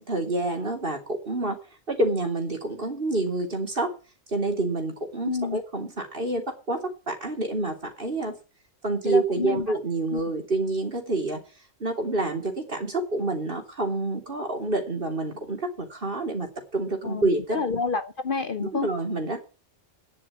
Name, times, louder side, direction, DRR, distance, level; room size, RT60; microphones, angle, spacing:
voice 1, 0.0-1.6 1.9-3.9 4.3-8.3 8.8-11.4 11.8-17.6 18.6-19.5, right 2 dB, 45° right, 3.2 m, -28 dB
voice 2, 5.2-5.6 9.1-9.7 10.1-10.2 17.0-18.9, left 4 dB, 50° left, 0.9 m, -29 dB
10.5 x 7.7 x 8.6 m
omnidirectional pair, 1.3 m